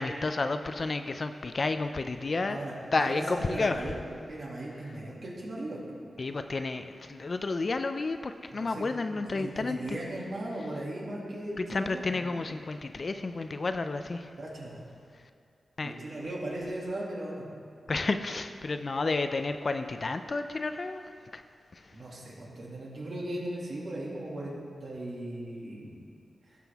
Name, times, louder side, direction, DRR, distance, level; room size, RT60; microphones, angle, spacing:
voice 1, 0.0-2.6 2.9-3.8 6.2-10.0 11.6-14.3 15.8-15.9 17.9-21.0 21.3-21.4, left 3 dB, 45° left, 8 dB, 0.4 m, -31 dB
voice 2, 2.5-4.0 4.3-5.8 8.5-8.9 9.1-12.3 14.4-14.8 15.8-17.5 21.9-26.0, right 1 dB, 60° right, -5 dB, 2.4 m, -37 dB
16.5 x 6.0 x 3.5 m, 2.3 s
wide cardioid pair, 90°, 0 cm